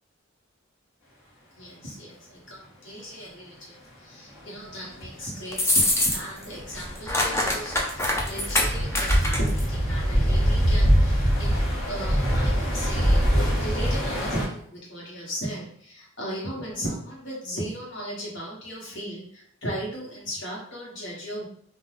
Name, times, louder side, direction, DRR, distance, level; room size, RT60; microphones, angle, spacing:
voice 1, 1.6-21.5, equal, 60° left, -4 dB, 1.1 m, -36 dB
sound 1, 4.4-4.5 4.9-5.1 5.5-14.5, equal, 90° left, 1.3 m, -24 dB
sound 2, 5.5-6.4 6.7-9.6, left 1 dB, 15° left, 0.3 m, -24 dB
2.4 x 2.4 x 3.3 m, 0.62 s
head